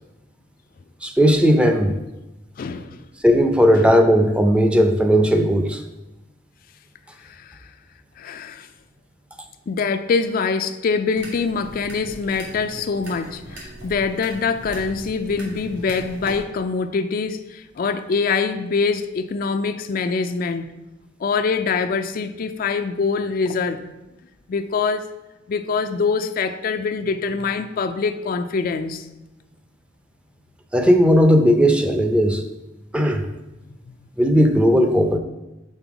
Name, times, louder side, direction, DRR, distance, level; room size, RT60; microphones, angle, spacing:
voice 1, 1.0-1.9 3.2-5.8 30.7-32.4 32.9-33.2 34.2-35.2, equal, 5° right, 0.5 m, -16 dB
voice 2, 2.6-3.0 7.2-7.7 8.2-8.7 9.7-20.7 21.2-23.9 24.5-25.1 25.5-29.1, left 5 dB, 50° left, 0.4 m, -24 dB
sound 1, 11.1-16.4, right 1 dB, 85° right, 2.1 m, -39 dB
5.3 x 4.1 x 5.9 m
head